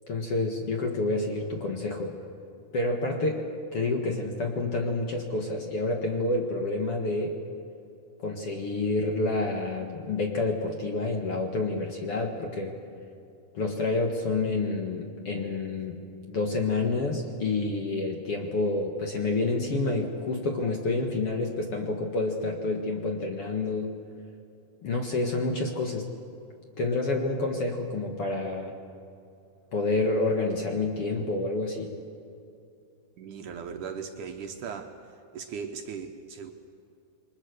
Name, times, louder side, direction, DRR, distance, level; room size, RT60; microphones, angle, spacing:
voice 1, 0.1-2.2 2.7-7.3 8.2-12.8 13.5-24.0 24.8-26.1 26.8-28.7 29.7-31.9, left 2 dB, 50° left, 2 dB, 2.0 m, -28 dB
voice 2, 33.2-34.9 35.3-36.5, right 6 dB, 65° right, 4 dB, 2.2 m, -38 dB
28.5 x 23.0 x 6.7 m, 2.6 s
omnidirectional pair, 4.3 m